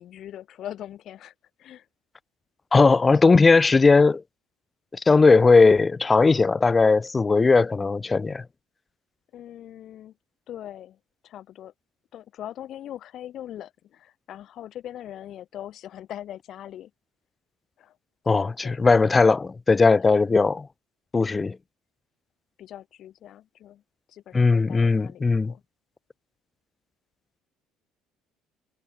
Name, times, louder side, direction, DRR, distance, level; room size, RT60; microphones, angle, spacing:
voice 1, 0.0-1.3 1.6-1.9 9.3-10.1 10.5-11.0 11.2-11.7 12.1-16.9 17.8-18.0 18.3-18.8 20.0-20.2 22.6-23.8 24.1-25.6, left 11 dB, 55° left, 5.7 m, -41 dB
voice 2, 2.7-4.2 4.9-8.4 18.3-20.7 21.1-21.6 24.3-25.5, left 4 dB, 25° left, 0.3 m, -18 dB
figure-of-eight pair, 55°, 0 cm